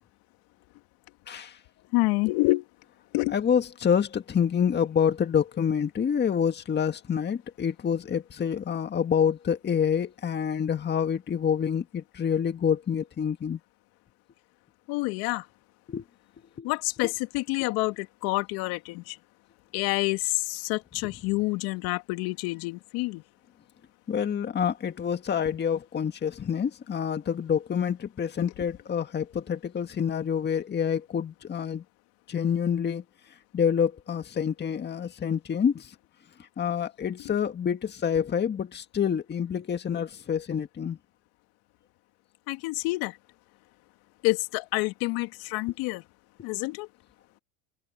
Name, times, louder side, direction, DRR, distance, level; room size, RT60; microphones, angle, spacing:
voice 1, 1.3-1.6 3.3-13.6 15.9-16.0 16.6-16.7 17.0-17.1 24.1-31.8 32.3-33.0 33.5-35.9 36.6-41.0, left 7 dB, 25° left, 1.9 m, -27 dB
voice 2, 1.9-2.6 3.1-3.3 14.9-15.4 16.6-19.1 19.7-20.2 20.5-23.2 42.5-43.1 44.2-46.0 46.4-46.9, left 23 dB, 60° left, 2.7 m, -28 dB
hypercardioid pair, 105°, 42 cm